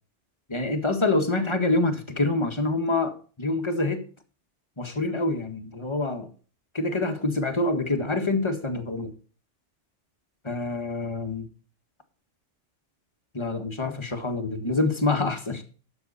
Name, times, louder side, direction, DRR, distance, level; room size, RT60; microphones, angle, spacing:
voice 1, 0.5-4.1 4.8-6.3 6.7-9.1 10.4-11.5 13.3-15.6, left 2 dB, 25° left, 1.8 m, -26 dB
13.0 x 8.1 x 4.2 m
omnidirectional pair, 1.2 m